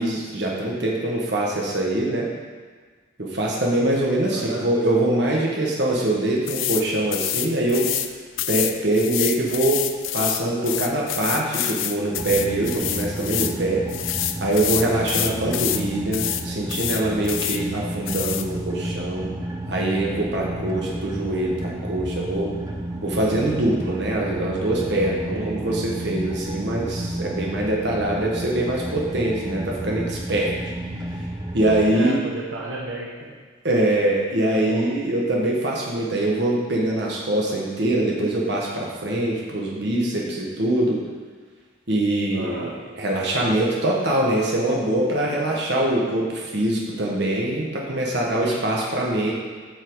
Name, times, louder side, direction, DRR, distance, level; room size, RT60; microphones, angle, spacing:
voice 1, 0.0-2.3 3.2-7.9 8.5-9.8 10.1-13.8 14.4-19.3 19.7-22.5 23.0-30.6 31.5-32.2 33.6-41.0 41.9-49.3, right 1 dB, 55° right, -3 dB, 1.4 m, -23 dB
voice 2, 4.3-4.6 25.3-25.5 31.9-33.3 34.5-34.9 42.3-42.7 48.4-48.6, right 2 dB, 75° right, -4 dB, 1.3 m, -32 dB
sound 1, 6.5-6.8 7.1-8.1 8.4-13.6 13.9-15.8 16.1-16.4 16.7-17.6 18.1-18.5, left 12 dB, 70° left, 0.5 m, -27 dB
sound 2, 12.2-31.9, right 1 dB, 15° right, 0.5 m, -32 dB
8.3 x 5.9 x 4.8 m, 1.5 s
head